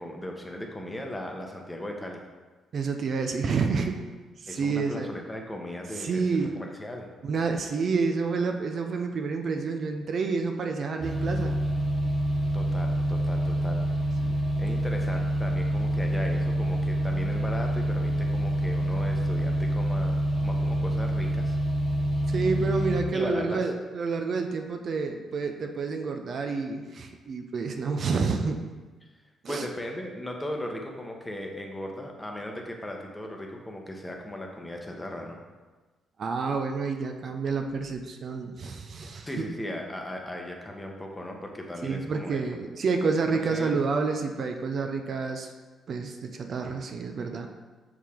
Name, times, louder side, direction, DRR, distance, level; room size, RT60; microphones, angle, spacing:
voice 1, 0.0-2.2 4.5-7.1 12.5-13.8 14.6-21.6 23.1-23.6 29.5-35.4 39.3-42.4 43.3-43.8, left 1 dB, 15° left, 2 dB, 0.9 m, -37 dB
voice 2, 2.7-4.0 4.4-5.1 6.0-6.6 7.2-11.6 14.2-14.4 22.3-28.6 29.4-29.7 36.2-39.3 41.8-45.5 45.9-47.5, right 4 dB, 55° right, 4 dB, 0.5 m, -29 dB
sound 1, 11.0-23.0, equal, 20° right, 0.9 m, -27 dB
5.8 x 4.7 x 3.5 m, 1.3 s
cardioid pair, 90°, 0 cm